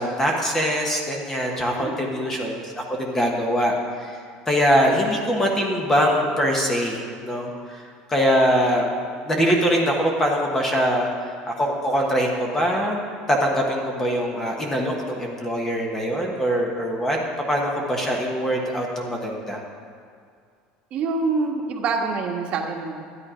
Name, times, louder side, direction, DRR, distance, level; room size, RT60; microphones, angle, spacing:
voice 1, 0.0-4.1 4.5-7.8 8.1-8.9 9.2-11.1 11.5-13.0 13.3-17.2 17.5-19.6, equal, 15° left, 0 dB, 1.3 m, -23 dB
voice 2, 1.8-2.1 20.9-23.0, right 4 dB, 40° right, 1 dB, 1.5 m, -26 dB
13.0 x 9.6 x 5.1 m, 2.2 s
cardioid pair, 155°, 3 cm